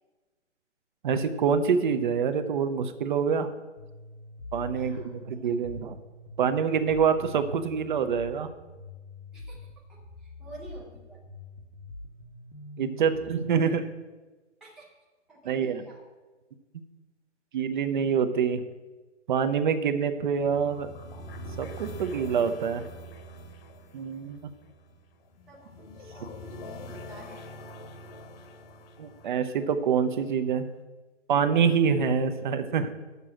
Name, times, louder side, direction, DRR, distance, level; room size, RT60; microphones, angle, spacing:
voice 1, 1.0-3.5 4.5-6.0 6.4-8.5 12.8-13.8 15.4-15.8 17.5-18.6 19.3-20.9 21.6-22.8 23.9-24.5 29.0-30.7 31.3-32.9, right 6 dB, 40° right, 10 dB, 0.7 m, -26 dB
sound 1, 3.8-13.8, left 2 dB, 75° left, 1.5 m, -45 dB
voice 2, 4.7-5.4 9.3-11.2 14.6-14.9 15.3-16.0 25.5-27.5, right 1 dB, ahead, -5 dB, 0.5 m, -50 dB
sound 2, 20.2-30.3, equal, 50° left, 1.4 m, -44 dB
6.8 x 6.0 x 7.6 m, 1.2 s
hypercardioid pair, 140°, 37 cm